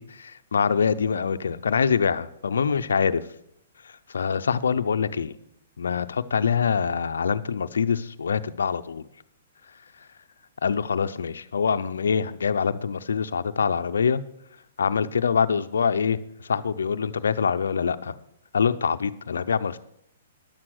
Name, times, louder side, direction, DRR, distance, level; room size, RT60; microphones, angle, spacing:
voice 1, 0.0-3.2 4.1-5.3 5.8-9.0 10.6-14.2 14.8-16.2 16.5-18.1 18.5-19.8, left 6 dB, 85° left, 11 dB, 0.6 m, -24 dB
10.5 x 7.5 x 6.4 m, 0.76 s
hypercardioid pair, 135°, 0 cm